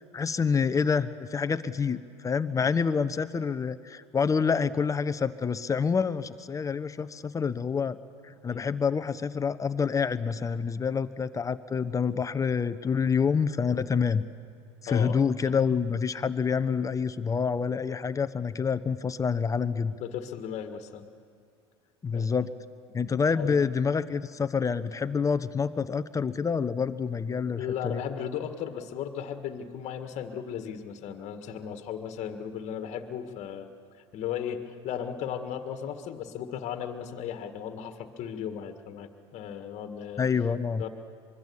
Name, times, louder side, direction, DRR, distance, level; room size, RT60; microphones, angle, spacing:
voice 1, 0.1-8.0 8.2-14.2 14.8-19.9 22.0-22.5 22.9-28.0 40.2-40.8, left 6 dB, 20° left, 13 dB, 1.0 m, -27 dB
voice 2, 14.9-15.2 15.4-15.5 20.0-21.1 22.1-22.3 23.3-23.6 27.6-33.7 34.1-40.3 40.8-40.9, left 8 dB, 50° left, 7 dB, 1.8 m, -36 dB
24.5 x 22.5 x 7.2 m, 2.2 s
hypercardioid pair, 75°, 15 cm